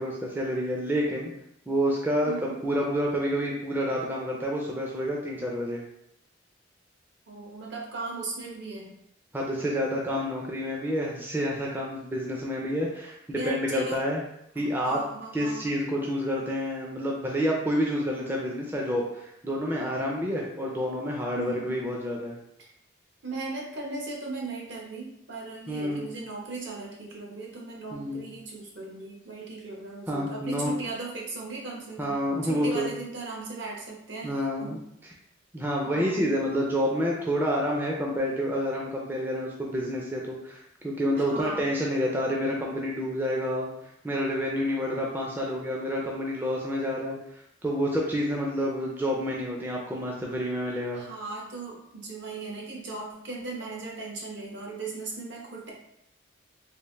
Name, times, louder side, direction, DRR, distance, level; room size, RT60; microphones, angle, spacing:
voice 1, 0.0-1.3 1.7-2.3 2.6-5.8 9.3-14.2 14.6-15.0 15.3-22.4 25.7-26.1 27.9-28.2 30.1-30.7 32.0-32.9 34.2-34.8 35.5-43.7 44.0-47.2 47.6-51.0, equal, 10° right, -3 dB, 0.4 m, -28 dB
voice 2, 2.2-2.6 7.3-8.9 13.3-14.1 14.6-15.7 21.3-21.8 22.6-22.7 23.2-34.8 35.8-36.3 41.1-41.7 50.9-55.7, right 3 dB, 65° right, -2 dB, 0.9 m, -37 dB
3.4 x 2.5 x 3.1 m, 0.77 s
head